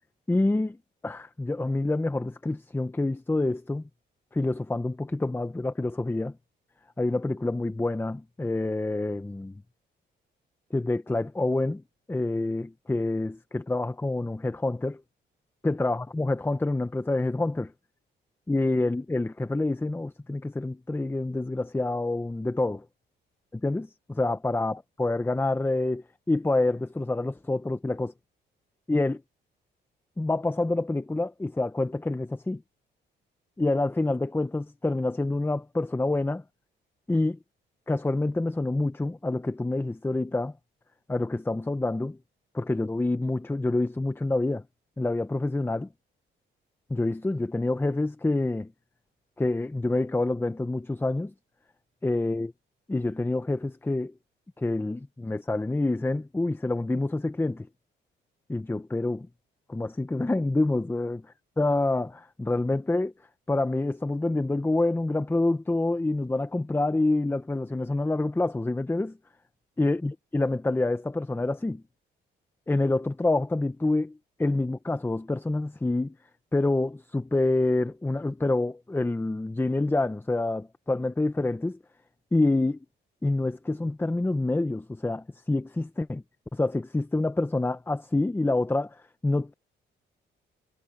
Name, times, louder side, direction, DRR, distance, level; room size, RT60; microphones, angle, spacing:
voice 1, 0.3-0.8 1.0-3.8 4.3-6.4 7.0-9.6 10.7-11.8 12.1-15.0 15.6-17.7 18.5-22.8 23.5-28.1 28.9-29.2 30.2-32.6 33.6-36.4 37.1-37.4 37.9-40.5 41.1-42.2 42.5-44.6 45.0-45.9 46.9-48.7 49.4-51.3 52.0-52.5 52.9-54.1 54.6-57.7 58.5-59.3 59.7-61.2 61.6-63.1 63.5-69.2 69.8-71.8 72.7-76.1 76.5-81.8 82.3-82.8 83.2-86.2 86.5-89.5, left 2 dB, 10° left, 0.9 m, -27 dB
cardioid pair, 90°, 20 cm